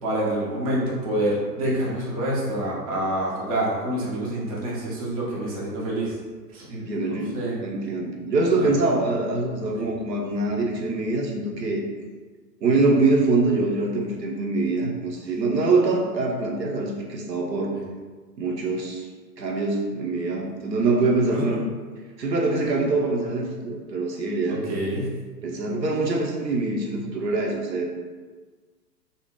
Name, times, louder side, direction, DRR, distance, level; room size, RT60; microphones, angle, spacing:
voice 1, 0.0-6.2 6.5-6.6 7.3-7.5 8.6-8.7 9.7-9.9 21.3-21.6 24.5-25.1, right 1 dB, 25° right, -6 dB, 0.4 m, -27 dB
voice 2, 6.7-7.4 7.6-11.8 12.6-17.7 18.4-19.1 19.4-21.6 22.2-24.6 25.4-27.9, right 3 dB, 80° right, -1 dB, 0.7 m, -24 dB
2.6 x 2.1 x 3.5 m, 1.4 s
figure-of-eight pair, 115°, 50 cm